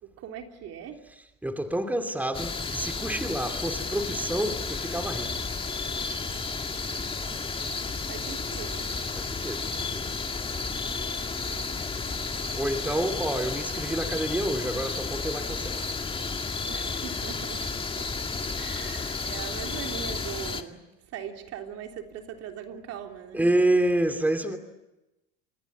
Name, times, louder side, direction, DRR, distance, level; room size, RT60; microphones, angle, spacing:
voice 1, 0.0-1.0 8.1-8.9 11.2-11.9 16.7-17.6 18.0-18.1 18.5-20.8 21.1-23.5, right 8 dB, 55° right, 3.3 m, -40 dB
voice 2, 1.4-5.3 9.1-10.1 11.4-11.5 12.5-15.8 23.3-24.6, right 1 dB, 5° right, 2.8 m, -28 dB
sound 1, 2.3-20.6, left 4 dB, 20° left, 2.0 m, -32 dB
27.5 x 21.5 x 8.5 m
supercardioid pair, 95°, 30 cm